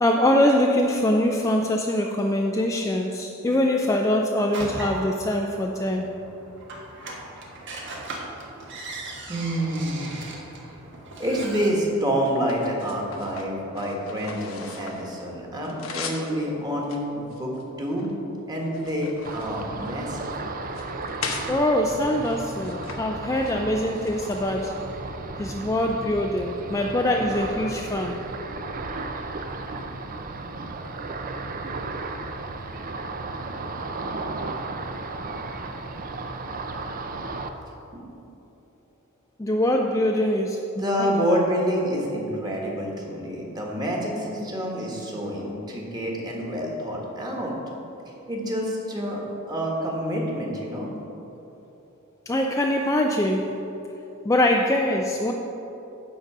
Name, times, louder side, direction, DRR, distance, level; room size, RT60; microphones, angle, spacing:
voice 1, 0.0-6.1 21.2-24.8 25.4-28.2 39.4-40.6 41.0-41.1 52.3-53.6 54.2-55.3, left 1 dB, 15° left, 2 dB, 0.4 m, -23 dB
sound 1, 4.5-11.7, right 2 dB, 60° right, 1.3 m, -38 dB
voice 2, 9.3-10.1 10.7-10.8 11.2-17.5 17.8-18.1 18.4-20.3 37.9-38.0 40.8-47.5 48.1-50.9, equal, 20° right, -2 dB, 1.5 m, -28 dB
sound 2, 10.1-11.0 11.6-15.1 15.4-16.3 16.8-18.1 18.5-20.2 20.6-21.5 22.2-23.0 23.3-23.5 23.9-24.9, left 5 dB, 70° left, 1.0 m, -39 dB
Ocean, 19.2-37.5, right 3 dB, 40° right, 0.5 m, -34 dB
10.5 x 4.0 x 7.3 m, 3.0 s
head